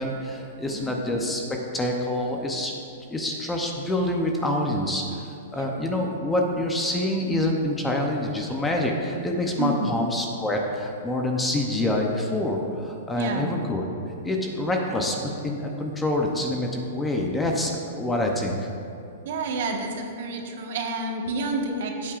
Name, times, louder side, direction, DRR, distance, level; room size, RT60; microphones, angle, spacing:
voice 1, 0.0-1.4 1.7-2.7 3.1-13.9 14.2-18.7, left 1 dB, 10° left, 1 dB, 0.7 m, -26 dB
voice 2, 0.7-1.0 5.5-5.6 9.6-9.9 13.1-13.5 19.2-22.1, right 2 dB, 55° right, 2 dB, 1.4 m, -29 dB
15.5 x 8.6 x 2.5 m, 2.8 s
hypercardioid pair, 160°, 0 cm